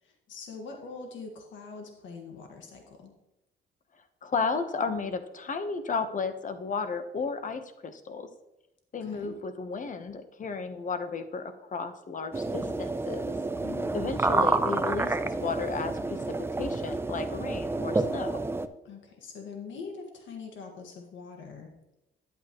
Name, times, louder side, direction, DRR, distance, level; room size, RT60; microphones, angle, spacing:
voice 1, 0.0-3.1 9.0-9.3 13.6-13.9 18.8-21.7, left 4 dB, 70° left, 2 dB, 1.7 m, -43 dB
voice 2, 4.2-8.3 8.9-13.3 13.9-15.2 15.4-16.2 16.5-18.4, left 4 dB, 40° left, 9 dB, 1.0 m, -33 dB
sound 1, 12.3-18.7, right 2 dB, 10° right, 0.6 m, -29 dB
10.5 x 8.7 x 3.0 m, 0.93 s
cardioid pair, 90°, 20 cm